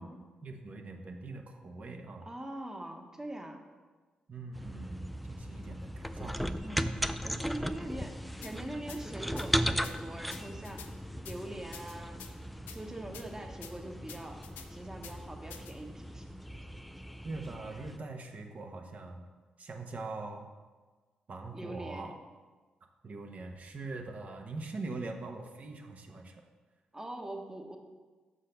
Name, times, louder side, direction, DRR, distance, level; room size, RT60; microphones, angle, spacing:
voice 1, 0.4-2.3 4.3-6.3 17.2-19.3 19.6-20.5 21.3-22.1 23.0-26.4, right 3 dB, 50° right, 3 dB, 1.0 m, -42 dB
voice 2, 2.2-3.6 6.6-10.8 11.2-12.3 12.7-16.3 21.5-22.2 26.9-27.8, right 1 dB, 15° right, 3 dB, 1.1 m, -43 dB
sound 1, 4.5-18.0, equal, ahead, 0.3 m, -37 dB
sound 2, 8.4-8.5 8.9-9.0 9.4-9.5 9.8-9.9 10.3-10.9 11.2-11.4 11.7-12.3 12.7-12.8 13.1-13.2 13.6-13.7 14.1-14.7 15.0-15.1 15.5-15.7, left 8 dB, 80° left, 0.5 m, -47 dB
6.6 x 4.0 x 5.2 m, 1.4 s
hypercardioid pair, 45°, 3 cm